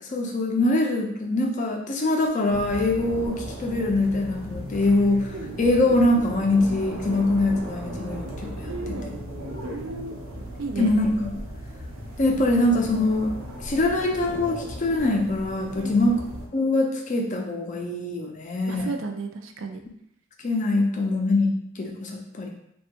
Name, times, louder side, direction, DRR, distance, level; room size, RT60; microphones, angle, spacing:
voice 1, 0.0-5.3 5.6-8.7 10.8-11.3 12.2-13.3 13.6-16.2 16.5-18.9 20.4-22.5, left 2 dB, 35° left, 1 dB, 0.4 m, -23 dB
sound 1, 2.5-16.5, equal, 85° right, 0.8 m, -36 dB
voice 2, 8.6-9.1 9.6-10.2 10.6-10.9 15.8-16.2 18.7-19.8, right 3 dB, 65° right, 4 dB, 0.4 m, -33 dB
3.3 x 2.3 x 2.8 m, 0.73 s
head